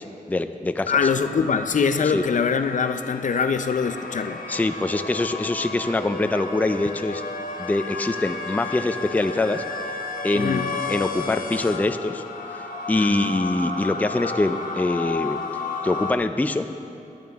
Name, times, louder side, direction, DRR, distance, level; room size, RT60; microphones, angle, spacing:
voice 1, 0.0-1.0 2.1-2.2 4.5-7.2 7.6-9.6 10.2-12.2 12.5-12.6 12.9-15.4 15.8-16.7, left 2 dB, 10° left, 9 dB, 0.4 m, -24 dB
sound 1, 0.9-16.1, left 3 dB, 85° left, 0.9 m, -33 dB
voice 2, 0.9-4.4 10.3-10.7 13.0-13.4, left 6 dB, 65° left, 9 dB, 0.5 m, -23 dB
17.0 x 11.0 x 3.5 m, 2.7 s
wide cardioid pair, 120°, 14 cm